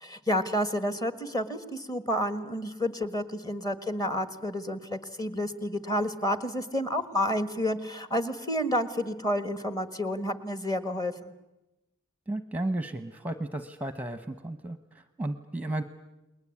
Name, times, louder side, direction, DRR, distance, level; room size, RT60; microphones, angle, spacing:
voice 1, 0.0-11.3, equal, 20° left, 11 dB, 1.5 m, -30 dB
voice 2, 12.3-15.8, right 1 dB, 10° right, 10 dB, 0.9 m, -34 dB
29.5 x 21.0 x 8.6 m, 0.98 s
head